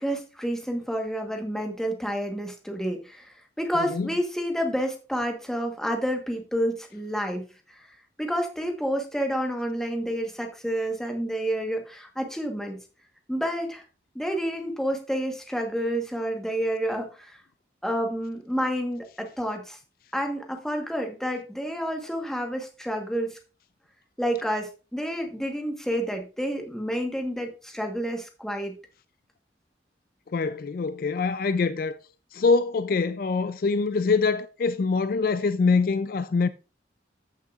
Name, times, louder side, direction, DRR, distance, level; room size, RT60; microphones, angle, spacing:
voice 1, 0.0-7.9 8.2-12.8 13.3-13.8 14.1-17.4 17.8-19.8 20.1-23.4 24.2-28.8, equal, 5° left, 1.2 m, -29 dB
voice 2, 30.3-32.0 32.3-36.5, left 4 dB, 50° left, 0.4 m, -24 dB
14.0 x 6.5 x 2.4 m
head